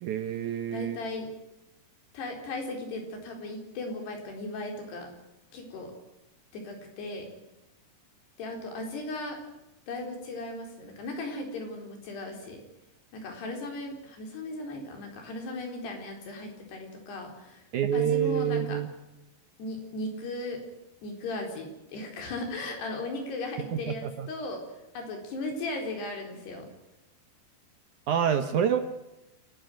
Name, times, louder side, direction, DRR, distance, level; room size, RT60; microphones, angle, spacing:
voice 1, 0.0-1.0 17.7-18.9 23.9-24.3 28.1-28.8, right 9 dB, 70° right, 9 dB, 2.0 m, -27 dB
voice 2, 0.7-1.3 2.1-5.1 5.5-5.9 6.5-7.3 8.4-9.4 9.9-12.6 13.1-17.6 17.9-18.8 19.6-20.6 21.0-24.6 24.9-26.7, left 2 dB, 90° left, 3 dB, 6.4 m, -37 dB
28.0 x 12.5 x 9.3 m, 0.93 s
omnidirectional pair, 4.6 m